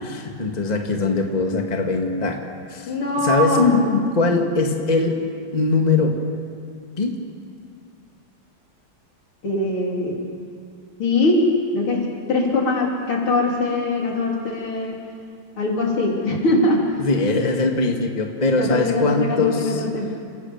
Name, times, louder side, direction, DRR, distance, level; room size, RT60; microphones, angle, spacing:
voice 1, 0.0-2.4 2.7-2.9 3.2-3.6 4.1-5.2 5.5-6.2 7.0-7.1 17.0-19.8, left 3 dB, 20° left, 2 dB, 1.7 m, -21 dB
voice 2, 2.9-4.4 9.4-10.2 11.0-11.5 11.7-15.0 15.6-17.0 18.6-20.1, left 2 dB, 85° left, -1 dB, 4.2 m, -21 dB
28.5 x 16.5 x 7.3 m, 2.3 s
omnidirectional pair, 2.3 m